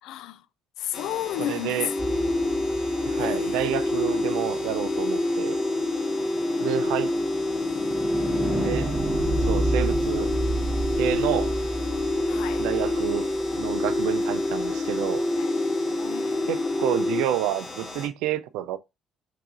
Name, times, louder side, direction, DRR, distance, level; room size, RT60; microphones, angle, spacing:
voice 1, 0.0-0.4 0.8-1.9 3.2-3.9 6.7-7.2 12.3-12.6 15.4-15.5 15.8-16.5, left 13 dB, 60° left, 0.4 m, -33 dB
sound 1, 0.9-18.1, left 2 dB, 40° left, 2.8 m, -39 dB
voice 2, 1.4-1.9 3.0-5.6 6.6-7.2 8.5-8.9 9.4-10.3 11.0-11.6 12.6-15.3 16.5-18.8, right 12 dB, 65° right, 0.5 m, -29 dB
sound 2, 1.8-17.2, left 2 dB, 5° left, 0.7 m, -27 dB
sound 3, 2.0-4.1 6.0-14.0, right 2 dB, 35° right, 0.9 m, -31 dB
4.7 x 3.7 x 2.5 m
figure-of-eight pair, 50°, 0 cm